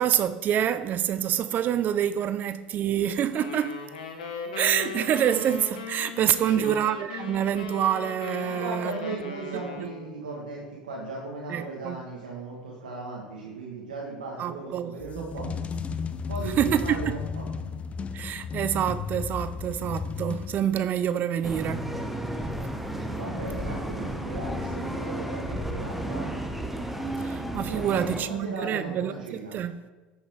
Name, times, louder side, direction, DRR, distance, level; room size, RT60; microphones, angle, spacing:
voice 1, 0.0-3.8 4.6-8.9 9.8-9.9 11.5-12.0 14.4-15.5 16.6-17.2 18.1-21.9 27.2-29.9, right 10 dB, 45° right, 0.4 m, -27 dB
sound 1, 3.3-10.2, left 5 dB, 80° left, 1.1 m, -38 dB
voice 2, 6.3-6.9 8.4-15.5 16.3-17.5 23.1-26.3 27.7-29.6, right 3 dB, 85° right, 1.3 m, -37 dB
sound 2, 15.0-21.0, left 5 dB, 30° left, 0.6 m, -34 dB
sound 3, 21.4-28.2, right 1 dB, 5° right, 1.0 m, -32 dB
9.3 x 6.5 x 3.5 m
hypercardioid pair, 75°, 4 cm